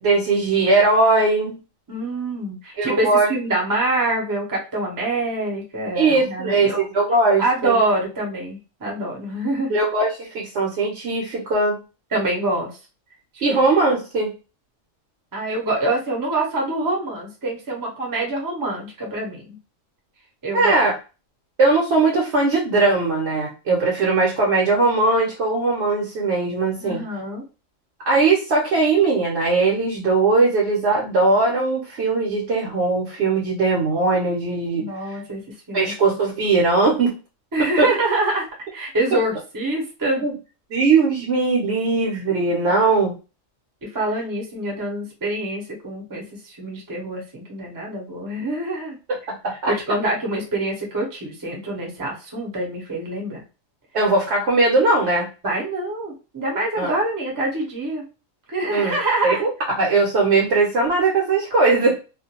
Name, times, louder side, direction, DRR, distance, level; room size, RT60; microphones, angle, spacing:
voice 1, 0.0-1.6 2.8-3.3 5.9-7.8 9.7-11.8 13.4-14.3 20.5-20.9 21.6-27.0 28.0-35.2 35.7-37.2 37.6-37.9 40.2-40.3 40.7-43.2 49.4-49.7 53.9-55.3 56.8-56.9 58.7-59.0 59.2-59.5 59.8-62.0, right 3 dB, 60° right, -3 dB, 0.9 m, -19 dB
voice 2, 1.9-6.8 7.4-9.8 12.1-12.7 13.3-13.6 15.3-19.6 20.4-20.8 26.8-27.4 34.7-35.4 35.7-35.9 37.5-38.5 38.7-40.2 42.7-42.8 43.8-49.0 49.7-53.4 55.4-58.0 58.5-59.4, right 2 dB, 20° right, -1 dB, 0.6 m, -25 dB
2.4 x 2.2 x 2.8 m, 0.32 s
omnidirectional pair, 1.4 m